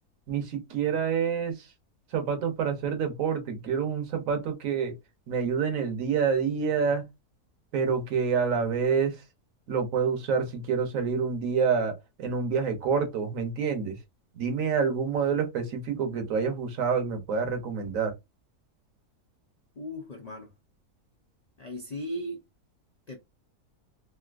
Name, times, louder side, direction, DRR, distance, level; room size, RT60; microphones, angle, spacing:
voice 1, 0.3-1.6 2.1-4.9 5.3-7.0 7.7-9.2 9.7-14.0 14.4-18.1, right 6 dB, 65° right, 1.1 m, -27 dB
voice 2, 19.8-20.5 21.6-22.4 23.1-23.2, equal, 75° left, 0.3 m, -37 dB
3.3 x 2.6 x 2.4 m
omnidirectional pair, 1.6 m